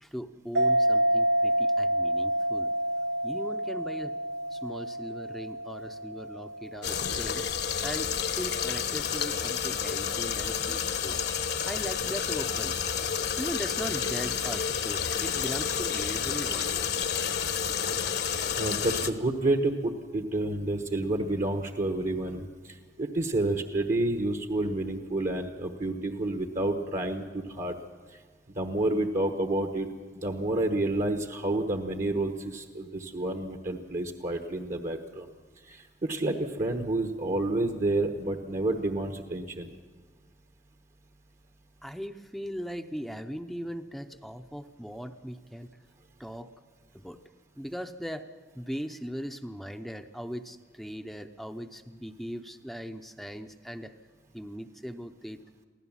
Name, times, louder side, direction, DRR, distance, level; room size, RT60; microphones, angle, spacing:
voice 1, 0.0-2.7 3.2-4.1 4.5-7.4 7.8-8.1 8.4-11.2 11.7-12.9 13.3-16.7 41.8-45.7 46.2-46.5 46.9-47.2 47.6-48.3 48.5-53.9 54.3-55.4, equal, ahead, 7 dB, 0.6 m, -39 dB
sound 1, 0.6-7.6, right 1 dB, 75° right, 0.7 m, -28 dB
sound 2, 6.8-19.1, left 7 dB, 65° left, 1.1 m, -30 dB
voice 2, 18.6-27.8 28.5-29.9 30.1-35.3 35.7-39.7, right 2 dB, 45° right, 6 dB, 1.2 m, -29 dB
23.5 x 16.0 x 7.3 m, 1.5 s
head